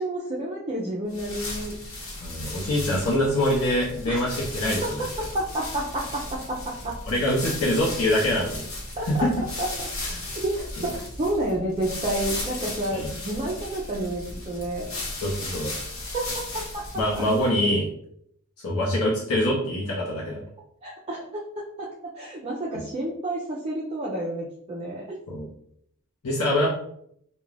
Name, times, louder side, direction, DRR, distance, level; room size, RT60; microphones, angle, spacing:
voice 1, 0.0-1.7 4.1-4.2 5.0-5.1 5.3-6.9 9.0-9.1 9.6-9.9 10.4-14.9 16.1-16.8 20.8-21.4 21.8-21.9 22.2-25.0, right 1 dB, 30° right, -4 dB, 0.4 m, -30 dB
sound 1, 1.1-17.6, left 2 dB, 65° left, 1.0 m, -35 dB
voice 2, 2.2-5.0 7.1-8.7 9.1-9.3 10.0-10.2 12.9-13.1 15.2-15.7 16.9-17.9 18.6-20.4 25.3-25.5 26.2-26.7, left 1 dB, 85° left, -4 dB, 0.6 m, -24 dB
2.4 x 2.1 x 3.2 m, 0.70 s
head